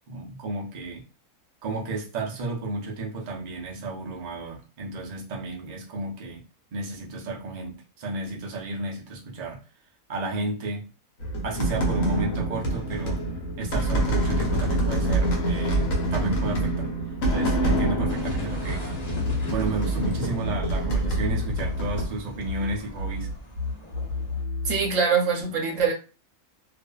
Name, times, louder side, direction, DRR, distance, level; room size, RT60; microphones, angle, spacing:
voice 1, 0.1-1.0 1.6-6.4 6.7-9.6 10.1-10.9 11.4-13.2 13.6-15.9 16.1-16.9 17.3-19.0 19.5-23.3, right 2 dB, 80° right, 0.3 m, -32 dB
sound 1, 11.2-22.1, right 1 dB, 65° left, 1.1 m, -26 dB
sound 2, 18.1-24.4, left 1 dB, 40° left, 0.6 m, -40 dB
sound 3, 19.1-22.2 22.4-25.0, left 2 dB, 85° left, 1.2 m, -31 dB
voice 2, 24.6-25.9, right 5 dB, 65° right, 0.9 m, -23 dB
2.5 x 2.5 x 2.2 m
omnidirectional pair, 1.7 m